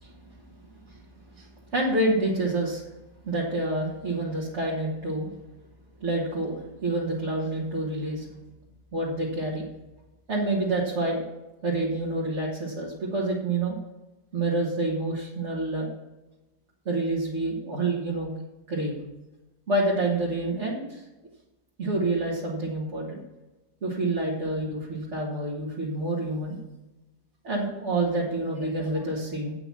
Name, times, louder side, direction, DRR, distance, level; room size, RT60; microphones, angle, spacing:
voice 1, 1.7-2.8 3.3-5.3 6.0-8.3 8.9-9.6 10.3-11.2 11.6-13.8 14.3-15.9 16.9-18.3 18.7-19.0 19.7-21.0 21.8-23.2 23.8-26.6 27.4-29.5, right 2 dB, 50° right, -4 dB, 1.9 m, -28 dB
8.9 x 5.9 x 7.3 m, 1.0 s
omnidirectional pair, 1.5 m